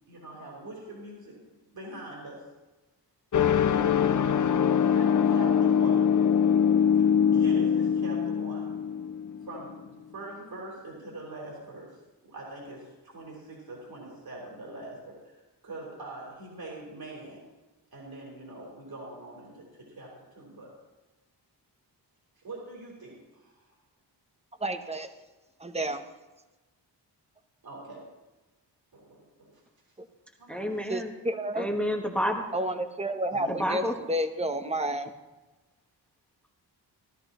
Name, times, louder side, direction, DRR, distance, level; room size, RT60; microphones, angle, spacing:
voice 1, 0.1-1.4 1.7-2.4 3.7-6.0 6.9-8.7 9.4-12.0 12.2-17.4 17.9-20.7 22.4-23.6 27.6-28.0 28.9-29.6 30.4-30.7 33.3-33.6, right 2 dB, 60° right, -3 dB, 4.0 m, -43 dB
sound 1, 3.3-9.7, left 8 dB, 45° left, 0.6 m, -23 dB
voice 2, 24.6-25.1 25.6-26.0 30.9-31.7 32.5-35.1, right 1 dB, 15° right, 8 dB, 0.9 m, -30 dB
voice 3, 30.5-31.1 31.5-32.4 33.5-33.9, equal, 5° left, 2 dB, 1.2 m, -29 dB
17.0 x 12.5 x 3.0 m, 1.1 s
wide cardioid pair, 105°, 42 cm